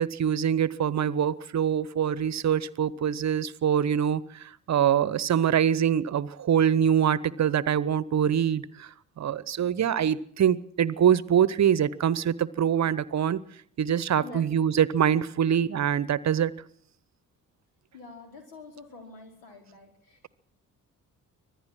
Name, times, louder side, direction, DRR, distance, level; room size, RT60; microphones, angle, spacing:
voice 1, 0.0-8.9 9.2-13.4 13.8-16.5, right 9 dB, 40° right, 20 dB, 0.9 m, -24 dB
voice 2, 14.2-14.7 17.9-20.3, left 3 dB, 75° left, 2 dB, 4.8 m, -46 dB
25.0 x 18.0 x 6.2 m, 0.63 s
figure-of-eight pair, 40°, 44 cm